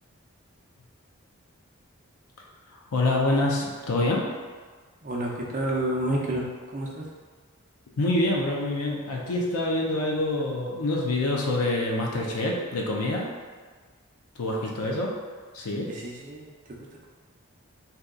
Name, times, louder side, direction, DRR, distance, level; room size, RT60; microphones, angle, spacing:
voice 1, 2.7-4.2 8.0-13.3 14.4-15.1 15.5-15.9, left 2 dB, 85° left, -1 dB, 0.5 m, -26 dB
voice 2, 5.0-7.1 14.5-15.0 15.8-16.7, right 1 dB, 35° right, -3 dB, 0.5 m, -30 dB
2.7 x 2.3 x 3.6 m, 1.5 s
head